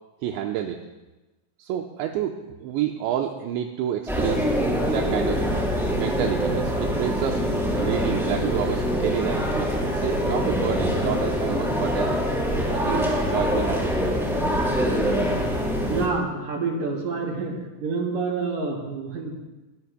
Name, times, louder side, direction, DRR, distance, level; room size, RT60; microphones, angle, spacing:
voice 1, 0.2-0.8 1.6-5.4 6.0-12.2 12.7-13.9, right 10 dB, 80° right, 2 dB, 2.9 m, -29 dB
sound 1, 4.1-16.1, equal, ahead, 3.6 m, -24 dB
voice 2, 15.9-17.5 17.8-19.4, right 4 dB, 50° right, 0 dB, 3.9 m, -27 dB
24.0 x 20.0 x 2.2 m, 1.1 s
omnidirectional pair, 5.5 m